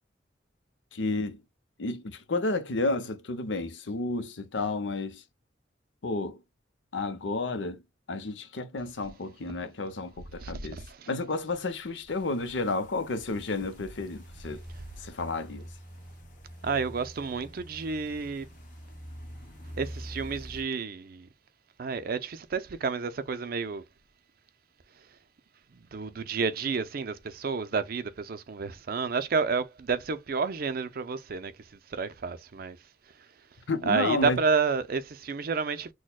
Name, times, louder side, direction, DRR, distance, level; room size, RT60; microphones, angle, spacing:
voice 1, 0.9-1.4 1.8-5.2 6.0-6.4 6.9-7.8 8.1-10.8 11.1-14.6 15.0-15.6 33.7-34.4, left 3 dB, 80° left, 0.7 m, -31 dB
voice 2, 10.4-11.1 14.7-15.1 16.6-18.5 19.8-21.3 21.8-23.8 24.9-25.2 25.7-35.9, right 5 dB, 55° right, 0.5 m, -31 dB
sound 1, 12.1-20.6, equal, 45° left, 1.2 m, -45 dB
6.2 x 2.2 x 2.2 m
head